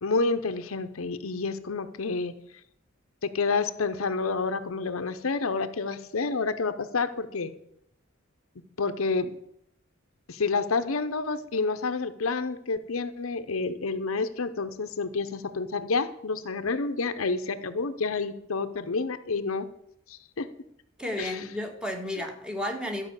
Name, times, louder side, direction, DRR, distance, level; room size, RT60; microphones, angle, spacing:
voice 1, 0.0-2.4 3.2-7.5 8.8-9.4 10.3-19.7 20.1-20.5 21.2-21.4, left 4 dB, 80° left, 0.8 m, -29 dB
voice 2, 21.0-23.1, left 1 dB, 5° right, 1.5 m, -32 dB
13.0 x 5.7 x 8.1 m
head